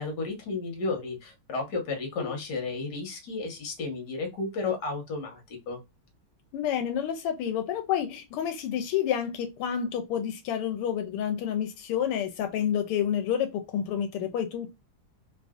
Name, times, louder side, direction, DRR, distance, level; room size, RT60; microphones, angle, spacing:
voice 1, 0.0-5.8, left 3 dB, 55° left, 1.6 m, -33 dB
voice 2, 6.5-14.7, left 9 dB, 85° left, 1.5 m, -29 dB
3.6 x 2.5 x 2.3 m
omnidirectional pair, 2.4 m